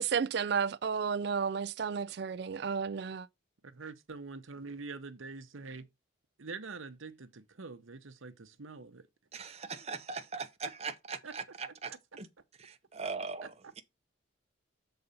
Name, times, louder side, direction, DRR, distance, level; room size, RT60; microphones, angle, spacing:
voice 1, 0.0-3.3, right 6 dB, 55° right, 0.4 m, -32 dB
voice 2, 3.6-5.9 6.4-9.1 11.2-11.3, right 4 dB, 85° right, 0.9 m, -45 dB
voice 3, 9.3-12.3 12.6-13.8, right 4 dB, 30° right, 0.8 m, -40 dB
6.9 x 4.0 x 5.3 m
head